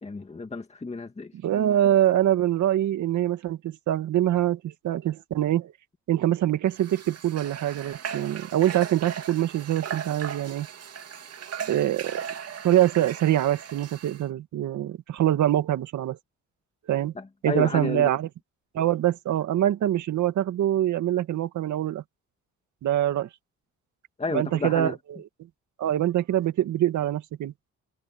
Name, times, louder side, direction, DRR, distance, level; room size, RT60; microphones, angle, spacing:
voice 1, 0.0-1.3 17.2-18.1 24.2-25.0, left 3 dB, 20° left, 2.1 m, -31 dB
voice 2, 1.4-5.7 6.1-10.7 11.7-12.2 12.6-16.2 16.9-17.1 17.4-18.3 18.7-22.0 22.8-23.3 24.3-25.0 25.8-27.5, right 12 dB, 75° right, 1.9 m, -24 dB
Water / Water tap faucet, 6.7-14.2, right 7 dB, 55° right, 2.4 m, -38 dB
cardioid pair, 90°, 30 cm